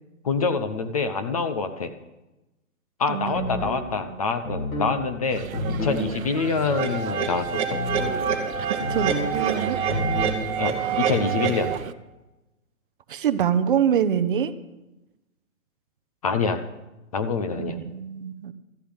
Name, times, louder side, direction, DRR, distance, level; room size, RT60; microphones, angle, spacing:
voice 1, 0.2-1.9 3.0-7.8 10.6-11.7 16.2-16.6 17.1-17.8, left 4 dB, 25° left, 9 dB, 0.5 m, -26 dB
voice 2, 3.1-3.7 4.1-4.2 8.6-10.2 10.8-11.1 13.1-14.5 17.6-18.5, right 8 dB, 40° right, 12 dB, 0.6 m, -26 dB
sound 1, 3.3-3.9 4.4-4.9 5.5-6.1 7.7-8.2 8.8-9.3 9.9-10.4, left 1 dB, 75° left, 4.5 m, -29 dB
sound 2, 5.3-11.9, right 9 dB, 75° right, 0.8 m, -35 dB
sound 3, 6.8-11.8, right 7 dB, 15° right, 1.3 m, -27 dB
13.0 x 6.8 x 9.6 m, 1.0 s
hypercardioid pair, 155°, 42 cm